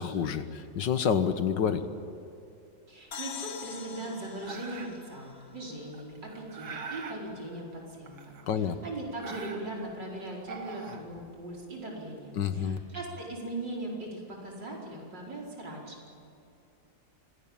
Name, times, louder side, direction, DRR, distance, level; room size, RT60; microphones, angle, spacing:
voice 1, 0.0-1.8 8.5-8.8 12.4-12.8, left 7 dB, 70° left, 10 dB, 1.8 m, -28 dB
voice 2, 2.9-16.2, right 1 dB, 65° right, -2 dB, 5.6 m, -39 dB
sound 1, 3.1-6.7, left 7 dB, 50° left, 1.5 m, -44 dB
sound 2, 4.4-5.1 5.9-7.2 8.1-8.7 9.0-9.9 10.4-11.6, right 5 dB, 85° right, 2.6 m, -42 dB
25.0 x 18.0 x 9.0 m, 2.7 s
omnidirectional pair, 2.1 m